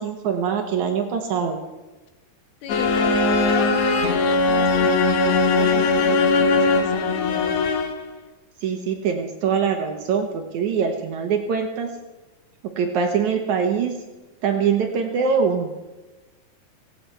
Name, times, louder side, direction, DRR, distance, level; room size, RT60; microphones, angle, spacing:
voice 1, 0.0-1.6 8.6-11.9 12.8-13.9 14.4-15.7, right 6 dB, 65° right, 5 dB, 2.1 m, -23 dB
voice 2, 2.6-7.6, left 5 dB, 90° left, 5 dB, 3.6 m, -36 dB
sound 1, 2.7-8.1, left 3 dB, 60° left, 1.9 m, -19 dB
18.0 x 16.0 x 4.5 m, 1.2 s
omnidirectional pair, 4.3 m